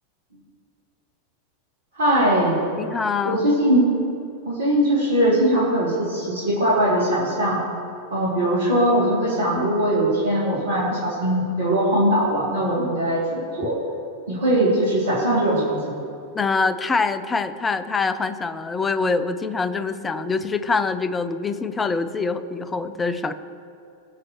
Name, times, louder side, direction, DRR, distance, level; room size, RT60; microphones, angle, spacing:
voice 1, 1.9-2.6 3.2-3.9 4.4-7.6 8.1-13.8 14.3-15.9, right 1 dB, 70° right, -7 dB, 2.8 m, -21 dB
voice 2, 2.8-3.4 16.3-23.3, left 4 dB, 15° left, 13 dB, 0.6 m, -24 dB
19.5 x 7.6 x 3.1 m, 2.7 s
figure-of-eight pair, 90°, 0 cm